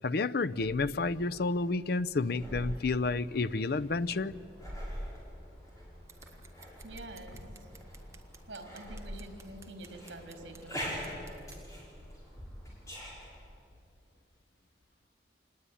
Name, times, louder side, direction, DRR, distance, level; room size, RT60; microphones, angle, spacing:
voice 1, 0.0-4.3, left 3 dB, 55° left, 17 dB, 0.5 m, -30 dB
sound 1, 0.6-13.4, equal, 15° left, 5.7 m, -44 dB
sound 2, 3.1-10.8, left 1 dB, ahead, 6.6 m, -61 dB
Scissors, 6.1-11.6, right 5 dB, 15° right, 1.3 m, -56 dB
voice 2, 6.8-7.7 8.5-11.1, right 1 dB, 70° right, 5 dB, 3.9 m, -47 dB
25.5 x 20.0 x 9.9 m, 2.5 s
head